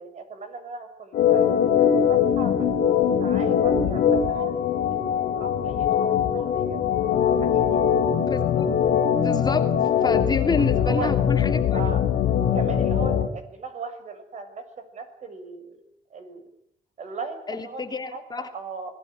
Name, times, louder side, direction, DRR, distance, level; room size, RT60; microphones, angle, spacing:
voice 1, 0.0-2.7 3.1-5.0 5.4-6.8 7.4-7.8 10.6-11.2 11.7-12.0 12.4-15.8 16.1-16.4 17.0-18.9, right 4 dB, 45° right, 8 dB, 6.9 m, -37 dB
Organ, 1.1-13.3, left 8 dB, 70° left, 3.2 m, -22 dB
voice 2, 8.3-8.7 9.2-9.6 10.0-11.8 17.5-18.5, left 4 dB, 25° left, 6 dB, 2.8 m, -28 dB
25.5 x 19.0 x 8.3 m, 0.72 s
cardioid pair, 110°, 17 cm